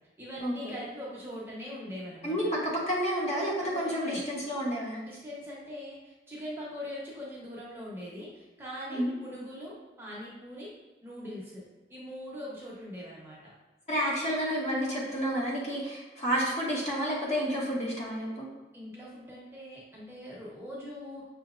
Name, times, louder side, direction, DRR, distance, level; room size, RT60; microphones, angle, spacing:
voice 1, 0.2-2.5 3.6-4.2 5.0-10.7 11.0-11.6 11.9-13.5 18.7-21.3, equal, 15° right, -6 dB, 0.9 m, -42 dB
voice 2, 2.2-5.0 8.9-9.1 13.9-18.5, equal, 40° left, -4 dB, 1.0 m, -30 dB
6.0 x 2.8 x 2.5 m, 1.2 s
head